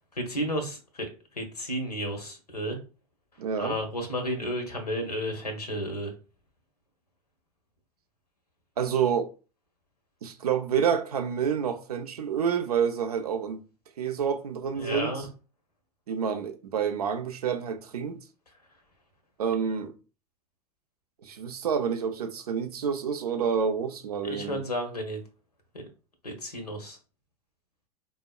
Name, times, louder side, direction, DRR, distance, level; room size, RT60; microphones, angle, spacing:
voice 1, 0.2-2.8 3.6-6.1 14.8-15.3 24.2-25.2 26.2-27.0, equal, 90° left, 0.8 m, -32 dB
voice 2, 3.4-3.8 8.8-9.3 10.2-13.6 14.0-15.2 16.1-18.2 19.4-19.9 21.2-24.6, right 7 dB, 75° right, 0.5 m, -28 dB
3.4 x 2.0 x 2.2 m
figure-of-eight pair, 90°, 20 cm